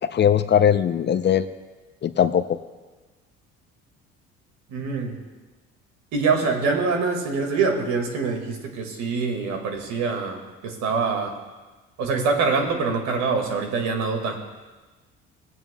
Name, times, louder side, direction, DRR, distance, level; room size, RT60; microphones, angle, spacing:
voice 1, 0.0-1.5 2.0-2.6, left 9 dB, 35° left, 12 dB, 0.5 m, -20 dB
voice 2, 4.7-5.2 6.1-11.4 12.0-14.4, right 4 dB, 70° right, 3 dB, 1.9 m, -24 dB
17.5 x 9.2 x 2.2 m, 1.2 s
supercardioid pair, 70°, 29 cm